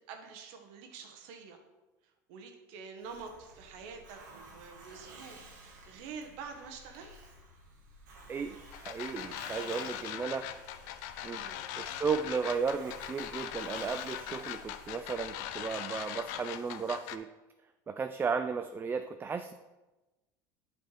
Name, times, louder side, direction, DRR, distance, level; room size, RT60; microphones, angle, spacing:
voice 1, 0.1-1.6 2.0-7.1 9.6-10.2 11.3-11.6, right 5 dB, 70° right, 5 dB, 1.0 m, -47 dB
Hiss, 3.0-16.5, right 1 dB, 90° right, 1.3 m, -54 dB
voice 2, 8.3-10.4 11.2-11.4 11.8-17.3 17.9-19.5, right 5 dB, 20° right, 8 dB, 0.3 m, -34 dB
sound 1, 8.7-17.2, left 11 dB, 70° left, 0.4 m, -41 dB
7.7 x 3.4 x 4.5 m, 1.1 s
supercardioid pair, 90°, 9 cm